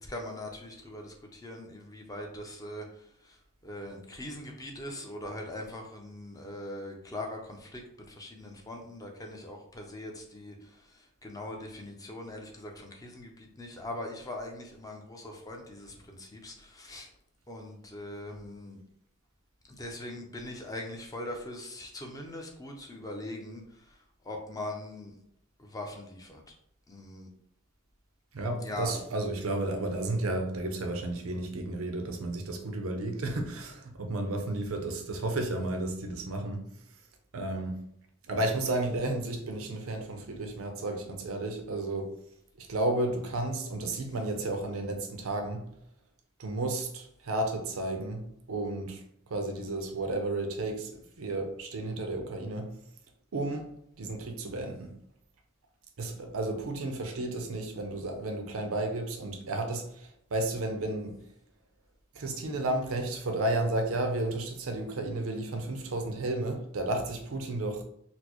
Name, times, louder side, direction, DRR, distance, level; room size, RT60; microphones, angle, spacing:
voice 1, 0.0-2.9 3.2-3.4 3.6-17.1 17.5-18.8 19.7-23.6 24.2-25.1 25.6-26.4 26.9-27.3 28.6-29.0, left 1 dB, 15° left, 0.5 m, -41 dB
voice 2, 28.3-36.6 37.3-37.8 38.3-42.1 42.6-45.6 46.4-48.2 48.5-49.0 49.3-50.9 51.2-52.7 53.3-53.7 54.0-54.9 56.0-59.8 60.3-61.2 62.2-67.8, right 2 dB, 80° right, 0.6 m, -32 dB
4.2 x 2.0 x 2.9 m
head